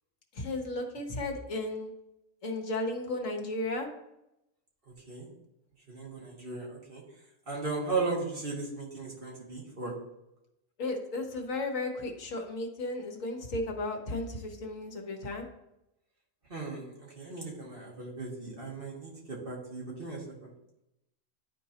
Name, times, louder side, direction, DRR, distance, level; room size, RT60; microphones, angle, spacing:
voice 1, 0.3-1.9 2.4-3.9 10.8-15.5, left 2 dB, 65° left, 2 dB, 1.6 m, -34 dB
voice 2, 4.9-5.3 5.9-7.0 7.5-9.9 16.5-20.5, right 3 dB, 40° right, -3 dB, 2.2 m, -36 dB
12.0 x 4.5 x 2.9 m, 0.87 s
omnidirectional pair, 1.5 m